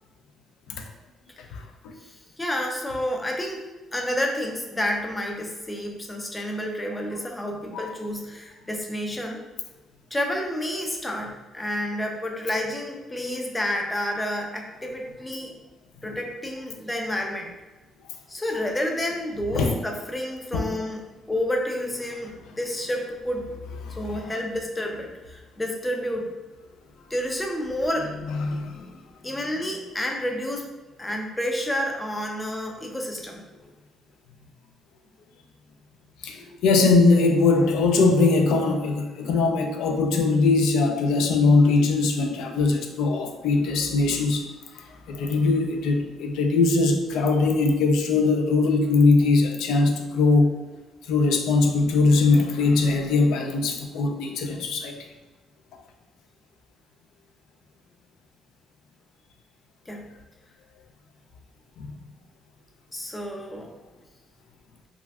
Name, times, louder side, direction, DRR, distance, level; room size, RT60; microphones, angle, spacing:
voice 1, 2.0-3.7 3.9-9.4 10.1-15.5 16.0-17.5 18.3-21.0 21.3-23.5 24.0-26.3 27.1-28.1 29.2-30.7 31.0-33.4 59.9-60.1 62.9-63.7, left 1 dB, 10° left, 1 dB, 0.3 m, -30 dB
voice 2, 23.8-24.3 28.3-29.0 36.2-44.4 44.7-50.5 51.1-55.0 61.8-61.9, left 3 dB, 85° left, 4 dB, 0.4 m, -21 dB
2.4 x 2.3 x 3.3 m, 1.2 s
cardioid pair, 175°, 0 cm